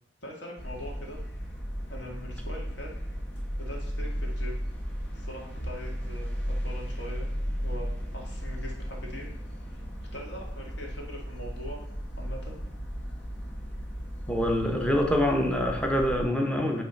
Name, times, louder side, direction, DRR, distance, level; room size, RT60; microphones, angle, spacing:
voice 1, 0.2-1.2 1.9-2.9 3.6-4.6 5.1-6.3 6.6-7.3 7.6-9.3 9.7-9.8 10.1-11.8 12.2-12.6, equal, 70° left, -1 dB, 1.7 m, -42 dB
sound 1, 0.6-16.2, equal, 85° left, 1.8 m, -35 dB
voice 2, 14.3-16.8, left 1 dB, 5° left, 1 dB, 0.7 m, -25 dB
8.9 x 3.2 x 4.0 m, 0.81 s
head